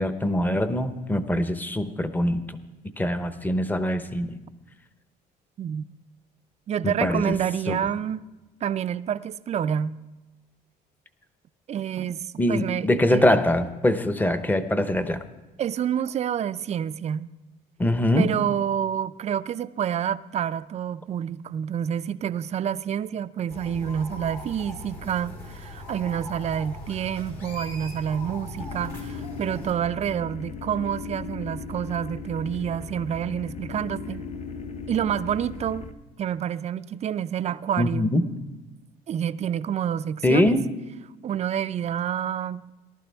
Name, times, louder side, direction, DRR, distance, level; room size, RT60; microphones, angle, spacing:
voice 1, 0.0-2.6 3.0-4.3 6.8-7.4 7.7-7.8 12.4-15.2 17.8-18.3 37.8-38.2 40.2-40.6, left 1 dB, 10° left, 0.8 m, -23 dB
voice 2, 6.7-8.2 8.6-10.0 11.7-13.2 15.6-17.3 18.2-34.3 34.9-35.9 36.2-38.1 39.1-40.6 41.2-42.7, right 9 dB, 40° right, 0.4 m, -28 dB
sound 1, 23.5-29.7, left 2 dB, 65° left, 3.4 m, -39 dB
sound 2, 28.6-35.9, left 5 dB, 40° left, 0.8 m, -37 dB
18.5 x 12.0 x 3.5 m
cardioid pair, 110°, 17 cm